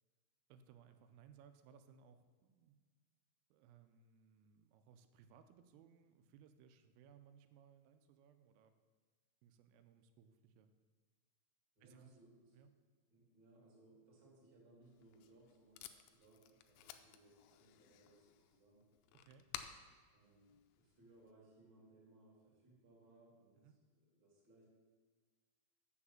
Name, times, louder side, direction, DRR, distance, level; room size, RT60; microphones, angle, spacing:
voice 1, 0.5-2.8 3.5-8.7 9.4-10.7 11.8-12.1 12.5-12.7 19.1-19.5 23.6-23.8, right 7 dB, 90° right, 9 dB, 3.3 m, -64 dB
voice 2, 11.7-12.6 13.1-18.9 20.1-23.6 23.9-24.7, right 2 dB, 30° right, -4 dB, 2.2 m, -66 dB
Packing tape duct tape, 14.8-21.3, left 11 dB, 85° left, 2.9 m, -56 dB
7.4 x 7.3 x 7.0 m, 1.5 s
omnidirectional pair, 5.8 m